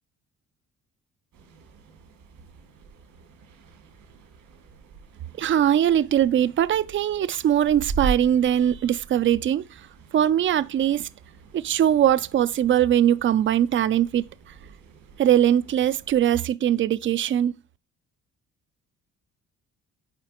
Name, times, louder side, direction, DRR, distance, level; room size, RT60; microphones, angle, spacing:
sound 1, 1.3-16.3, right 5 dB, 85° right, 2.3 m, -40 dB
voice 1, 5.4-9.6 10.1-11.1 11.5-14.3 15.2-17.5, right 10 dB, 40° right, 0.4 m, -21 dB
7.6 x 4.7 x 2.9 m
cardioid pair, 90°, 30 cm